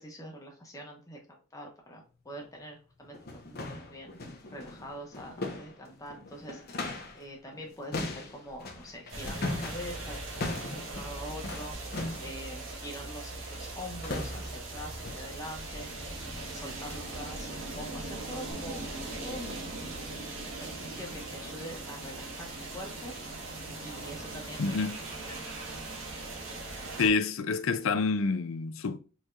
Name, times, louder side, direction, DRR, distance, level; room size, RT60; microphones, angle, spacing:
voice 1, 0.0-4.2 4.5-6.8 7.1-11.9 12.2-15.9 16.4-18.9 19.2-23.1 23.8-25.4, equal, 15° left, 1.3 m, -44 dB
sound 1, 2.4-2.5 3.0-7.3 7.5-12.4 13.5-13.8 14.0-14.7 15.0-15.3 15.8-16.0 16.4-16.6 17.0-17.3 17.8-17.9 18.5-18.6, left 2 dB, 50° left, 1.0 m, -39 dB
sound 2, 9.1-27.1, right 2 dB, 70° right, 1.6 m, -40 dB
voice 2, 24.6-25.0 27.0-29.0, left 4 dB, 75° left, 0.5 m, -28 dB
4.7 x 4.6 x 2.4 m
head